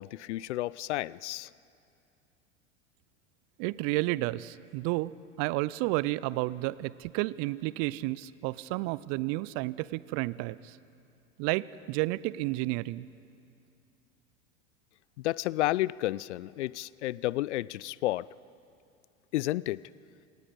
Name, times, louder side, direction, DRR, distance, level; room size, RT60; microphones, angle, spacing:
voice 1, 0.0-1.5 15.2-18.3 19.3-19.8, left 16 dB, 65° left, 22 dB, 0.5 m, -31 dB
voice 2, 3.6-10.8 11.4-13.1, right 19 dB, 45° right, 20 dB, 0.5 m, -31 dB
27.0 x 18.5 x 5.4 m, 2.5 s
hypercardioid pair, 85°, 37 cm